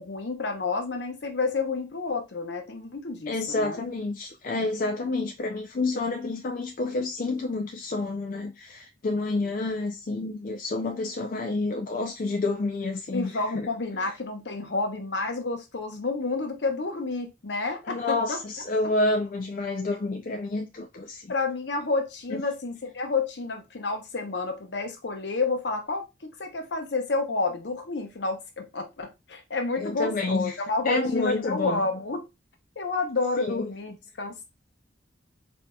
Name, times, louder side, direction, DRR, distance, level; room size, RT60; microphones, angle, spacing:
voice 1, 0.0-3.8 13.1-18.4 21.3-32.2 32.8-34.4, left 3 dB, 70° left, 0.8 m, -30 dB
voice 2, 3.3-13.7 17.8-21.3 22.3-22.4 29.8-30.6 30.9-31.8 33.4-33.7, left 2 dB, 50° left, 0.4 m, -29 dB
4.1 x 2.7 x 2.2 m
head